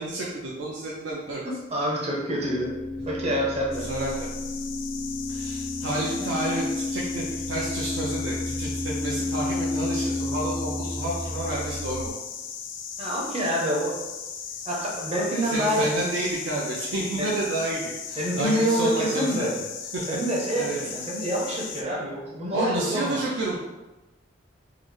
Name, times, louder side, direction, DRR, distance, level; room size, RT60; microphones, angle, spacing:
voice 1, 0.0-1.4 3.8-4.3 5.3-12.1 15.3-17.8 18.1-19.5 19.9-20.1 20.5-20.8 22.5-23.6, right 2 dB, 75° right, -4 dB, 0.5 m, -30 dB
voice 2, 1.7-2.7 3.1-3.9 13.0-14.0 14.7-15.9 17.2-17.3 18.2-19.5 20.1-23.2, equal, 30° right, -3 dB, 0.7 m, -26 dB
sound 1, 2.0-12.1, left 2 dB, ahead, 0.4 m, -32 dB
sound 2, 3.7-21.8, left 7 dB, 70° left, 0.3 m, -37 dB
3.8 x 2.0 x 3.2 m, 1.1 s
head